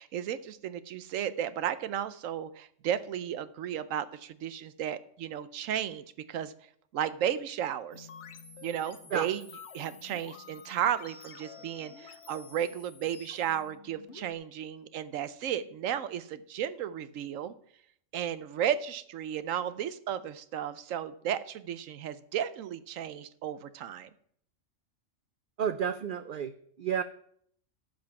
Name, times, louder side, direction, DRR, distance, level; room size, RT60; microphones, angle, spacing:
voice 1, 0.0-6.5 6.9-8.1 8.6-9.4 9.7-17.5 18.1-24.1, right 9 dB, 85° right, 14 dB, 1.0 m, -34 dB
sound 1, 7.9-14.3, left 6 dB, 65° left, 1.2 m, -50 dB
voice 2, 25.6-26.5 26.8-27.0, right 8 dB, 60° right, 11 dB, 0.6 m, -30 dB
14.5 x 5.3 x 6.9 m, 0.65 s
omnidirectional pair, 1.3 m